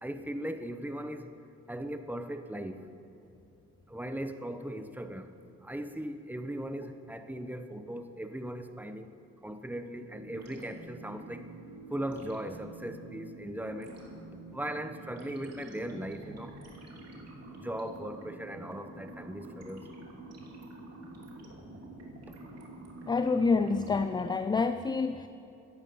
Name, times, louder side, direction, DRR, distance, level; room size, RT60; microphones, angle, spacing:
voice 1, 0.0-1.3 1.7-2.8 3.9-5.3 5.6-9.1 9.4-11.4 11.9-13.9 14.5-16.6 17.5-19.8, right 1 dB, 5° right, 8 dB, 0.9 m, -38 dB
sound 1, 10.1-24.3, right 2 dB, 55° right, 2.9 m, -47 dB
voice 2, 23.1-25.3, left 4 dB, 15° left, 11 dB, 0.4 m, -27 dB
16.5 x 10.5 x 5.5 m, 2.8 s
cardioid pair, 90°, 30 cm